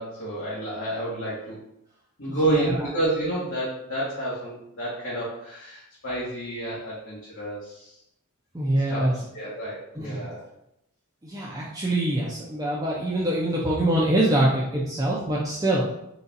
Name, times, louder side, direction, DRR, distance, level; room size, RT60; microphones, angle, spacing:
voice 1, 0.0-1.6 2.2-7.9 8.9-9.1 9.3-10.4, right 2 dB, 60° left, -8 dB, 1.3 m, -29 dB
voice 2, 2.3-2.9 8.5-9.1 10.0-10.3 11.2-15.9, right 1 dB, 15° right, -5 dB, 0.5 m, -24 dB
4.0 x 2.4 x 4.0 m, 0.79 s
head